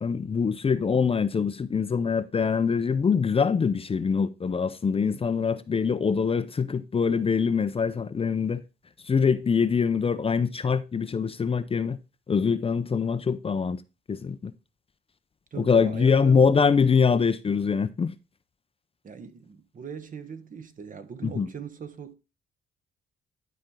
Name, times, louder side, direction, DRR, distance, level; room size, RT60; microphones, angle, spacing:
voice 1, 0.0-8.6 9.1-12.0 12.3-13.8 14.1-14.5 15.6-18.1 21.2-21.5, left 5 dB, 30° left, 0.6 m, -24 dB
voice 2, 15.5-16.8 19.0-22.1, right 6 dB, 40° right, 1.1 m, -40 dB
11.5 x 4.3 x 3.7 m
cardioid pair, 90°, 20 cm